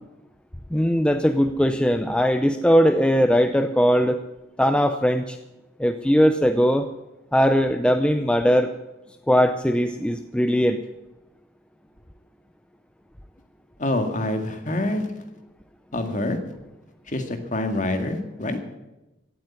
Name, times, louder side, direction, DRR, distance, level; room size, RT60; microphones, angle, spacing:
voice 1, 0.7-4.2 4.6-5.4 5.8-6.9 7.3-8.7 9.3-10.8, equal, 5° left, 8 dB, 0.5 m, -20 dB
voice 2, 13.8-15.1 15.9-16.4 17.1-18.6, left 1 dB, 40° left, 6 dB, 2.0 m, -26 dB
16.0 x 8.6 x 9.5 m, 0.99 s
head